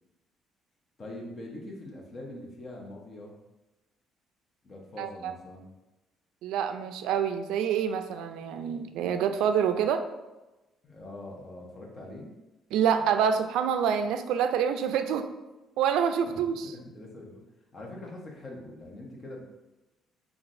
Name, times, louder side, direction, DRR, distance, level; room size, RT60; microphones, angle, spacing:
voice 1, 1.0-3.3 4.6-5.7 10.8-12.3 16.2-16.3 16.6-17.4 17.7-19.4, left 1 dB, 30° left, -1 dB, 0.9 m, -43 dB
voice 2, 5.0-5.3 6.4-10.0 12.7-15.3 15.8-16.7, right 8 dB, 85° right, 8 dB, 0.3 m, -27 dB
5.8 x 2.4 x 2.6 m, 1.0 s
cardioid pair, 140°, 0 cm